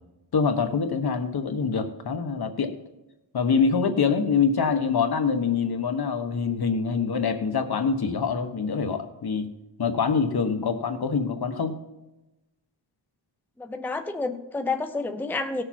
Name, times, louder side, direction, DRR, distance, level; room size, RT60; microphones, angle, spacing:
voice 1, 0.3-2.8 3.3-9.5 9.8-11.8, left 5 dB, 55° left, 7 dB, 1.2 m, -25 dB
voice 2, 10.4-10.7 13.6-15.6, left 3 dB, 5° left, 7 dB, 0.6 m, -30 dB
17.5 x 6.9 x 4.4 m, 0.98 s
wide cardioid pair, 125°, 44 cm